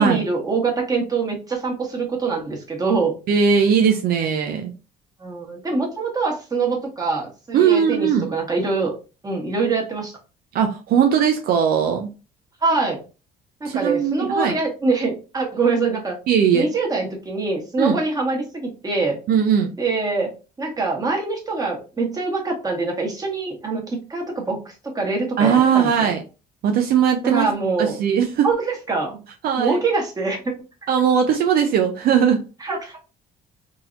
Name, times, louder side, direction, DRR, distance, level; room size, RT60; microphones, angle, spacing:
voice 1, 0.0-3.1 5.2-8.9 9.2-10.2 12.6-13.0 13.6-16.2 16.5-19.2 19.8-20.3 20.6-25.9 27.2-28.0 28.4-29.2 29.6-30.5 32.6-33.0, right 3 dB, 20° right, 1.5 m, -24 dB
voice 2, 3.3-4.7 7.5-8.2 10.5-12.1 13.6-14.6 16.3-16.7 17.8-18.0 19.3-19.7 25.4-26.2 26.6-27.4 27.8-28.5 29.4-29.8 30.9-32.4, right 7 dB, 65° right, 0.6 m, -19 dB
3.8 x 2.8 x 2.5 m
cardioid pair, 110°, 17 cm